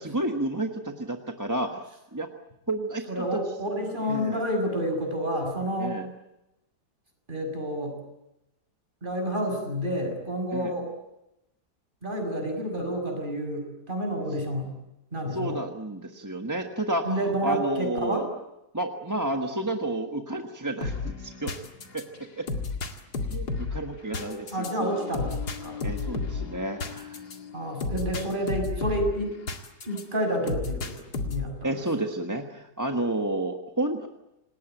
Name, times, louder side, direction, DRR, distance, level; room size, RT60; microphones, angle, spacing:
voice 1, 0.0-1.8 2.1-2.3 2.7-3.1 4.1-4.4 5.8-6.1 10.5-10.7 15.3-18.3 18.7-21.5 21.9-22.0 22.4-22.5 23.3-24.9 25.8-27.2 31.6-34.1, right 1 dB, 10° right, 4 dB, 1.2 m, -30 dB
voice 2, 3.1-6.0 7.3-8.0 9.0-10.9 12.0-14.7 15.1-15.6 17.0-18.3 24.5-25.8 27.5-29.4 29.9-32.1, equal, 30° right, 3 dB, 6.6 m, -29 dB
sound 1, 20.8-30.0 30.5-31.6, left 4 dB, 70° left, 2.7 m, -33 dB
27.5 x 20.0 x 9.1 m, 0.91 s
omnidirectional pair, 1.8 m